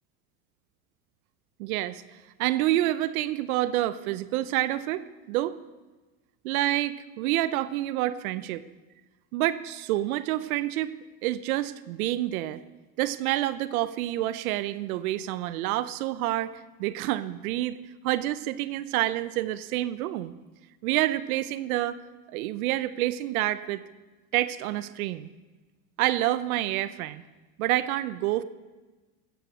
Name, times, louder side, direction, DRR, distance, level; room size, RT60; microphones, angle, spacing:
voice 1, 1.6-2.0 2.4-5.5 6.4-8.6 9.3-10.9 11.2-12.6 13.0-17.8 18.0-20.3 20.8-22.0 22.3-23.8 24.3-25.3 26.0-27.2 27.6-28.4, right 15 dB, 80° right, 16 dB, 0.7 m, -28 dB
14.5 x 9.1 x 6.1 m, 1.2 s
supercardioid pair, 100°, 42 cm